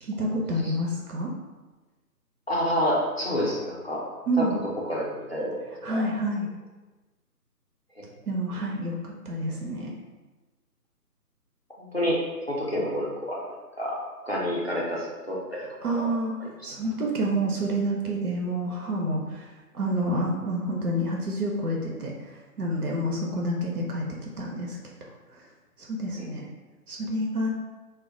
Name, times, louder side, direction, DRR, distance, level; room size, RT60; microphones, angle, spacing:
voice 1, 0.0-1.3 4.3-4.6 5.8-6.5 8.3-9.9 15.8-16.4 16.6-22.1 22.6-24.8 25.3-25.4 25.9-26.5 26.9-27.5, right 1 dB, 70° right, -1 dB, 0.6 m, -28 dB
voice 2, 2.5-4.0 4.4-4.5 4.9-6.0 11.8-12.2 12.5-14.0 14.3-15.6 15.8-16.1 16.4-16.5, equal, 40° left, -5 dB, 0.5 m, -28 dB
2.3 x 2.1 x 3.5 m, 1.2 s
hypercardioid pair, 175°, 48 cm